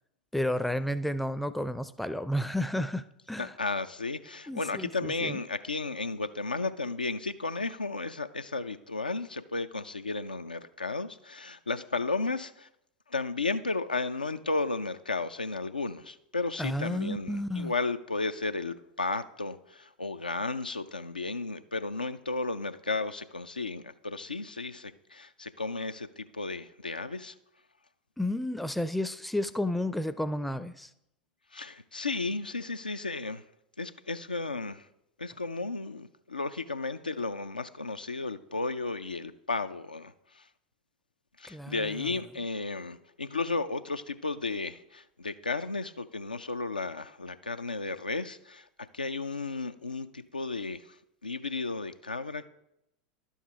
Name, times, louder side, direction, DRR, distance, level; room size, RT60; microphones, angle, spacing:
voice 1, 0.3-3.5 4.5-5.4 16.6-17.7 28.2-30.9 41.5-42.2, left 1 dB, ahead, 0.4 m, -32 dB
voice 2, 3.4-12.7 13.1-27.4 31.5-33.4 33.8-34.9 35.2-40.5 41.4-48.7 48.9-51.0 51.2-52.5, left 3 dB, 85° left, 0.4 m, -34 dB
11.0 x 7.1 x 3.5 m
figure-of-eight pair, 85°, 5 cm